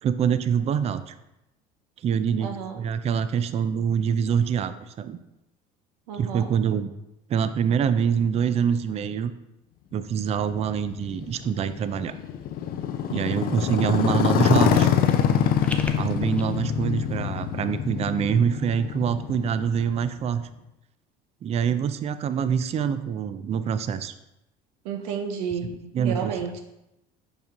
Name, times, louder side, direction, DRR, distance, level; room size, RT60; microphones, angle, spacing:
voice 1, 0.0-1.1 2.0-5.2 6.1-6.9 7.3-9.3 9.9-12.2 13.1-14.9 15.9-20.4 21.4-24.1 25.6-26.3, right 7 dB, 35° right, 12 dB, 0.4 m, -25 dB
voice 2, 2.4-2.8 6.1-6.5 14.7-14.9 24.8-26.6, right 7 dB, 80° right, 4 dB, 0.7 m, -31 dB
Motorcycle, 10.4-20.3, left 9 dB, 50° left, 0.5 m, -25 dB
sound 1, 15.1-16.4, left 2 dB, 5° left, 0.6 m, -39 dB
5.3 x 5.1 x 3.6 m, 0.89 s
supercardioid pair, 85°, 19 cm